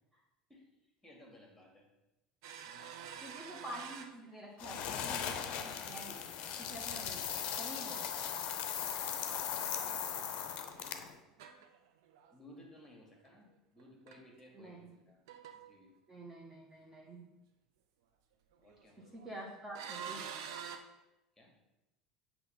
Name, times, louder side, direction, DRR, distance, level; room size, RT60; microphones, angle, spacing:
voice 1, 1.0-1.9 2.6-3.4 9.7-11.3 12.3-14.8 15.1-15.2 15.5-16.0 18.6-19.1 21.4-21.5, left 1 dB, 15° left, 0 dB, 1.8 m, -59 dB
sound 1, 2.4-4.9 5.2-5.8 6.2-6.3 8.3-9.5 9.8-10.9 11.3-12.3 13.3-13.4 13.8-13.9 14.1-14.2 14.6-15.0 15.3-15.8 18.5-19.3 19.8-20.8, right 7 dB, 65° right, 0.6 m, -48 dB
voice 2, 3.2-6.2 6.6-7.3 7.5-8.1 14.5-14.9 16.1-17.3 19.0-20.4, right 1 dB, 15° right, -3 dB, 1.2 m, -48 dB
sound 2, 4.6-11.2, left 8 dB, 50° left, 0.6 m, -38 dB
7.6 x 3.1 x 5.2 m, 0.95 s
figure-of-eight pair, 70°, 3 cm